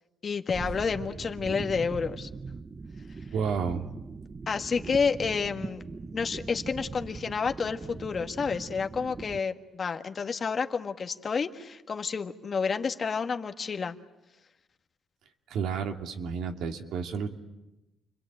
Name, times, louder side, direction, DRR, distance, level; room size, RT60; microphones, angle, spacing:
voice 1, 0.2-2.3 4.5-5.8 6.1-14.0, left 5 dB, 45° left, 6 dB, 1.6 m, -30 dB
sound 1, 0.5-9.4, right 4 dB, 30° right, 0.9 m, -40 dB
voice 2, 3.3-3.9 15.5-17.3, right 6 dB, 80° right, 4 dB, 2.6 m, -31 dB
29.5 x 22.5 x 9.1 m, 0.99 s
cardioid pair, 90°, 0 cm